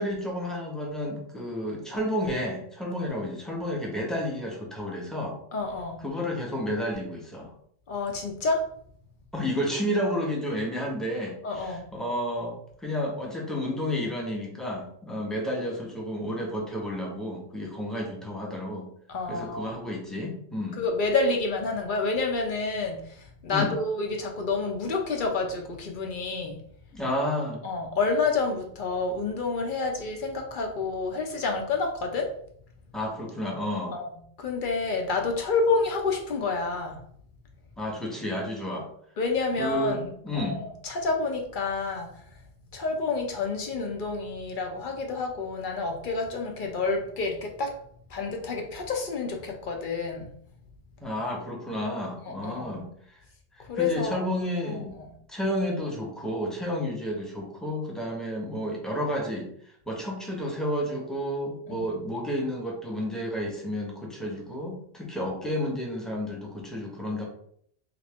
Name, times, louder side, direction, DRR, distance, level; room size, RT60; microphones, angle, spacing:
voice 1, 0.0-5.4 6.0-7.5 9.3-12.6 12.8-18.9 19.3-20.8 23.5-23.7 26.9-27.6 32.9-34.0 37.8-38.9 39.6-40.6 51.0-53.2 53.7-55.0 55.3-59.5 59.9-67.2, equal, ahead, -1 dB, 0.6 m, -31 dB
voice 2, 5.5-6.0 7.9-8.6 11.4-11.8 19.1-19.7 20.8-26.6 27.6-32.3 33.9-34.1 34.4-37.0 39.2-40.1 40.3-42.1 42.7-47.7 48.1-50.3 52.3-52.8 53.7-54.3 61.7-61.9, left 3 dB, 60° left, 3 dB, 0.7 m, -29 dB
3.3 x 2.5 x 3.4 m, 0.64 s
omnidirectional pair, 1.0 m